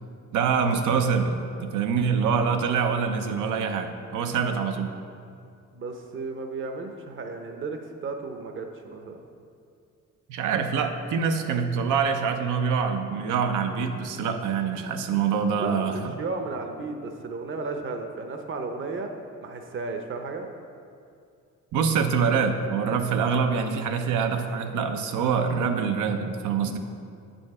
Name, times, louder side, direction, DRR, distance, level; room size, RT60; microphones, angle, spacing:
voice 1, 0.3-4.9 10.3-16.1 21.7-26.8, right 6 dB, 85° right, 6 dB, 0.7 m, -25 dB
voice 2, 5.7-9.1 15.6-19.1 19.4-20.5, right 3 dB, 40° right, 4 dB, 0.7 m, -34 dB
8.5 x 5.2 x 4.8 m, 2.4 s
cardioid pair, 90°, 30 cm